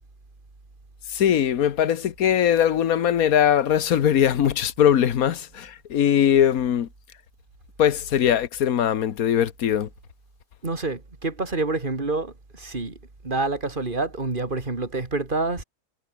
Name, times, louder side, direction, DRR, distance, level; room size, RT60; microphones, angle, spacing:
voice 1, 1.1-6.9 7.8-9.9, left 9 dB, 65° left, 1.5 m, -21 dB
voice 2, 10.6-13.0 13.2-15.6, right 3 dB, 30° right, 2.9 m, -27 dB
omnidirectional pair, 1.7 m